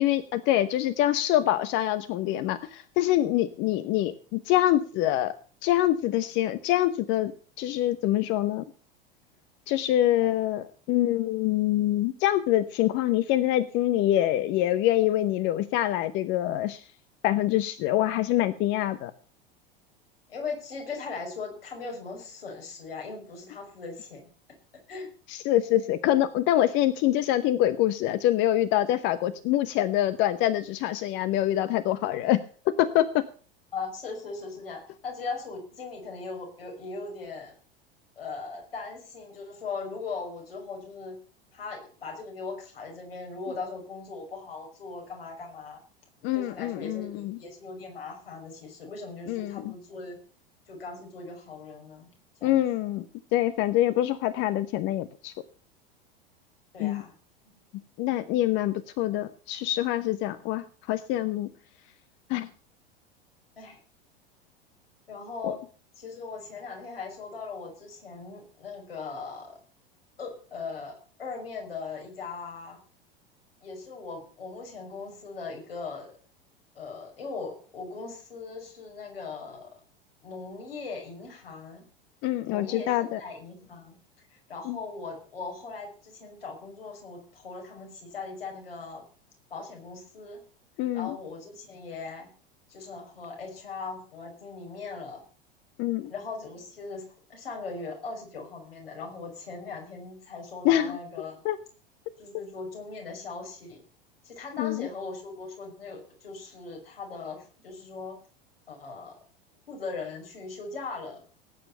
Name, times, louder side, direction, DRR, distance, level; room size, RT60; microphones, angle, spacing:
voice 1, 0.0-5.3 5.6-7.3 7.6-8.6 9.7-16.9 17.2-19.1 25.3-32.4 32.8-33.2 46.2-47.4 49.3-49.7 52.4-53.0 53.3-55.3 56.8-57.0 58.0-61.5 62.3-62.5 65.4-65.5 82.2-83.2 84.6-84.8 90.8-91.1 95.8-96.1 100.6-101.0 101.4-101.6 102.3-102.4 104.6-104.9, left 13 dB, 40° left, 13 dB, 0.9 m, -25 dB
voice 2, 20.3-24.3 24.7-25.1 33.7-37.6 38.2-41.2 41.5-45.8 46.3-50.2 50.7-52.1 52.4-52.6 56.7-57.1 63.6-63.8 65.1-65.6 66.0-69.6 70.2-72.8 73.6-76.1 76.7-79.8 80.2-81.8 82.5-84.0 84.3-89.0 89.5-90.4 90.9-92.3 92.7-95.2 96.1-97.0 97.3-101.4 102.2-103.8 104.2-108.2 108.7-109.2 109.7-111.2, left 4 dB, 75° left, 1 dB, 5.9 m, -39 dB
18.5 x 9.1 x 5.5 m, 0.41 s
figure-of-eight pair, 85°, 29 cm